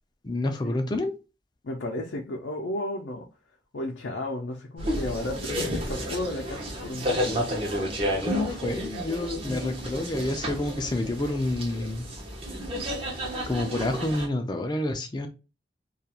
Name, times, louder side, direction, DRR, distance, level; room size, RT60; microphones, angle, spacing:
voice 1, 0.2-1.2 8.2-12.1 13.5-15.3, left 1 dB, 25° left, 0.4 m, -28 dB
voice 2, 1.6-3.3 3.7-7.5, left 1 dB, 80° left, 0.5 m, -33 dB
sound 1, 4.8-14.3, equal, 30° right, 0.7 m, -31 dB
2.3 x 2.3 x 2.8 m
head